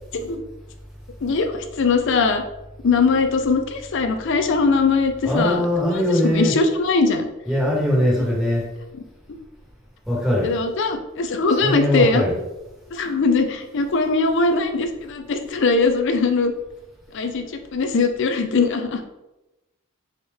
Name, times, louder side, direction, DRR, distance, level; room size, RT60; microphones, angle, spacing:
voice 1, 1.2-2.4 2.8-7.3 10.4-12.2 12.9-16.5 17.1-17.4 17.7-19.0, left 4 dB, 55° left, 6 dB, 0.4 m, -21 dB
voice 2, 5.2-6.5 7.5-8.7 10.1-10.5 11.6-12.3, left 1 dB, ahead, -6 dB, 1.4 m, -21 dB
4.3 x 3.6 x 3.5 m, 0.98 s
head